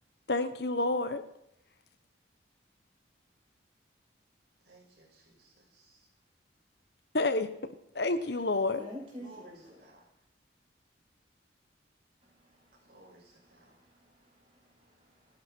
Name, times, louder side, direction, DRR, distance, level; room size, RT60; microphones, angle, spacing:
voice 1, 0.3-1.2 7.1-8.9, left 2 dB, 60° left, 11 dB, 1.1 m, -29 dB
voice 2, 4.6-6.1 9.2-10.0 12.8-13.8, right 2 dB, 55° right, -1 dB, 6.4 m, -57 dB
voice 3, 8.8-9.6 12.3-15.4, left 1 dB, 30° right, -3 dB, 7.2 m, -50 dB
27.5 x 11.0 x 4.5 m, 0.78 s
head